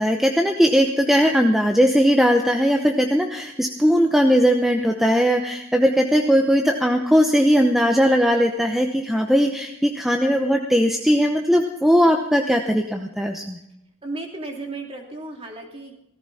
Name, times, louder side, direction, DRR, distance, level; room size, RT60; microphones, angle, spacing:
voice 1, 0.0-13.6, equal, ahead, 3 dB, 0.8 m, -19 dB
voice 2, 14.0-15.9, right 2 dB, 25° right, 1 dB, 2.8 m, -34 dB
17.5 x 15.0 x 4.2 m, 0.84 s
head